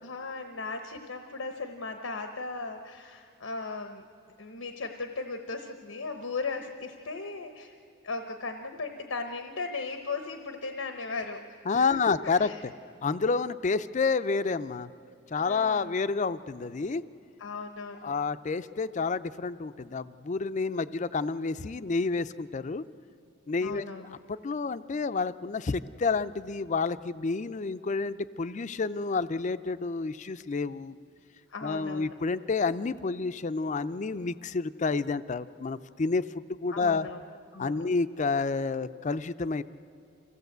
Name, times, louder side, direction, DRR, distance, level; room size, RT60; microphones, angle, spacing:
voice 1, 0.0-4.0 4.4-7.8 8.0-12.6 15.3-15.9 17.4-18.1 23.6-24.2 31.5-32.1 36.7-37.2 37.5-37.9, left 3 dB, 90° left, 6 dB, 1.0 m, -37 dB
voice 2, 11.7-12.7 13.0-14.9 15.3-17.0 18.0-22.8 23.5-30.9 31.6-36.2 36.6-37.1 37.6-39.6, left 4 dB, 35° left, 13 dB, 0.4 m, -29 dB
25.0 x 16.5 x 8.0 m, 2.7 s
head